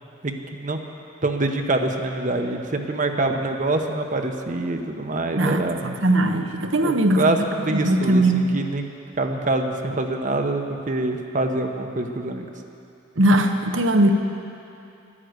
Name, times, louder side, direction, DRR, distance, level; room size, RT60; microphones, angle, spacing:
voice 1, 0.2-0.8 1.2-5.8 6.8-8.8 9.2-12.5, right 2 dB, 40° right, 4 dB, 0.8 m, -25 dB
voice 2, 5.3-7.2 7.7-8.5 13.2-14.1, right 1 dB, 65° right, 6 dB, 0.9 m, -20 dB
11.0 x 11.0 x 8.0 m, 2.7 s
head